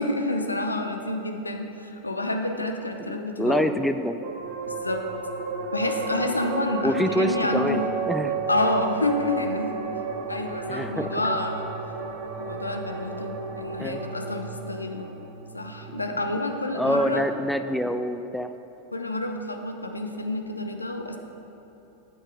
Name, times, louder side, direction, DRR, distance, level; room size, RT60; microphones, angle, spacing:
voice 1, 0.0-3.8 4.6-5.0 5.7-8.0 8.5-10.0 10.3-11.7 12.4-15.2 15.5-17.2 18.9-21.2, left 2 dB, 80° left, 4 dB, 0.6 m, -28 dB
voice 2, 3.0-4.2 6.8-7.8 8.1-8.4 10.7-11.2 13.8-14.0 15.9-16.0 16.7-18.5, equal, ahead, 9 dB, 0.3 m, -26 dB
sound 1, 4.2-17.0, right 4 dB, 50° right, 0.8 m, -33 dB
8.2 x 6.9 x 4.7 m, 3.0 s
figure-of-eight pair, 90°, 0 cm